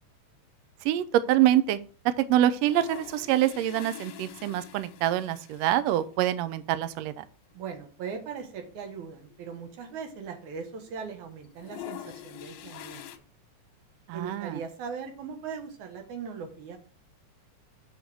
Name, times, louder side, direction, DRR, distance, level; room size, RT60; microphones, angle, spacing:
voice 1, 0.8-1.8 2.0-7.2 14.1-14.6, right 12 dB, 85° right, 13 dB, 1.5 m, -25 dB
sound 1, 2.5-6.0 6.4-6.5 6.6-6.7 7.7-7.9 8.3-8.4 8.6-10.5 10.8-11.1 11.4-13.2, left 12 dB, 70° left, 1.7 m, -44 dB
voice 2, 7.5-13.1 14.1-16.8, right 6 dB, 70° right, 5 dB, 2.7 m, -39 dB
6.5 x 5.2 x 6.1 m, 0.41 s
omnidirectional pair, 3.7 m